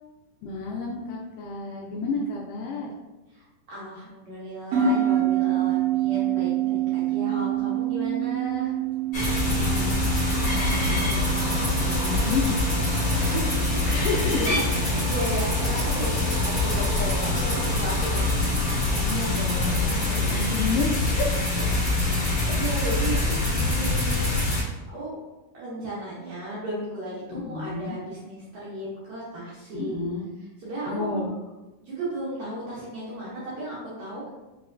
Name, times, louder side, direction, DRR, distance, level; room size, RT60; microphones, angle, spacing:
voice 1, 0.4-2.9 9.3-12.5 13.9-14.4 14.8-14.9 19.0-21.5 22.4-22.5 27.3-28.0 29.7-30.3 30.9-31.3, left 4 dB, 80° left, -2 dB, 2.0 m, -31 dB
voice 2, 3.3-8.7 12.9-18.3 21.6-24.3 24.7-25.2 25.5-30.0 30.6-31.2 31.8-34.3, right 1 dB, 65° right, -8 dB, 1.9 m, -35 dB
sound 1, 4.7-17.5, right 10 dB, 90° right, 2.5 m, -28 dB
sound 2, 9.1-24.6, left 2 dB, 45° left, 1.5 m, -24 dB
5.4 x 3.0 x 2.5 m, 1.1 s
omnidirectional pair, 4.2 m